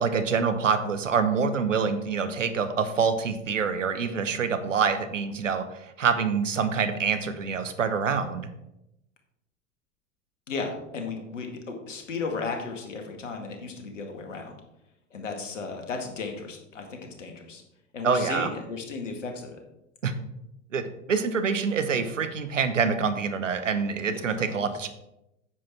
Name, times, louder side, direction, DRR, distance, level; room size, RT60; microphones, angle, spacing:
voice 1, 0.0-8.5 18.0-18.5 20.0-20.1 20.7-24.9, right 5 dB, 80° right, 9 dB, 1.1 m, -26 dB
voice 2, 10.5-14.6 15.1-17.6 17.9-19.5 24.4-24.7, left 4 dB, 75° left, 3 dB, 2.2 m, -35 dB
9.8 x 7.7 x 4.6 m, 0.87 s
figure-of-eight pair, 80°, 38 cm